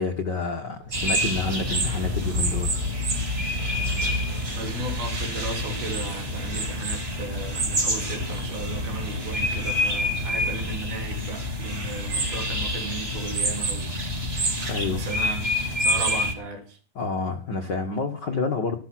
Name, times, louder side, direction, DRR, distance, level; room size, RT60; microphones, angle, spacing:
voice 1, 0.0-2.8 14.7-15.1 16.9-18.8, left 4 dB, 90° left, 5 dB, 0.9 m, -28 dB
sound 1, 0.8-12.8, left 1 dB, 40° right, 1.3 m, -39 dB
sound 2, 0.9-16.3, equal, 20° right, 2.5 m, -27 dB
voice 2, 4.5-13.9 14.8-16.8, right 2 dB, 80° right, 4 dB, 4.8 m, -36 dB
13.5 x 13.0 x 6.0 m, 0.40 s
omnidirectional pair, 4.3 m